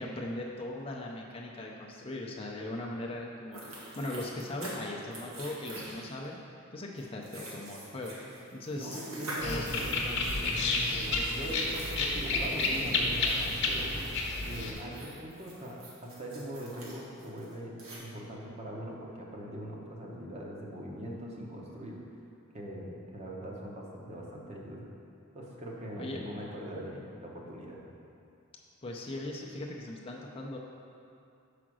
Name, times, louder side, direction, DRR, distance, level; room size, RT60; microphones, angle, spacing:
voice 1, 0.0-6.4 6.7-8.1 8.5-9.0 9.4-9.8 26.0-26.2 28.8-30.6, left 1 dB, 25° left, -2 dB, 0.5 m, -39 dB
sound 1, 3.5-4.8 5.1-6.3 7.0-14.1 14.4-18.0, right 1 dB, 85° right, 1.5 m, -45 dB
voice 2, 8.7-13.9 14.4-22.0 22.5-24.8 25.3-27.8, equal, 30° right, -2 dB, 0.9 m, -41 dB
sound 2, 9.4-14.7, left 3 dB, 60° left, 0.9 m, -30 dB
5.0 x 5.0 x 6.1 m, 2.6 s
head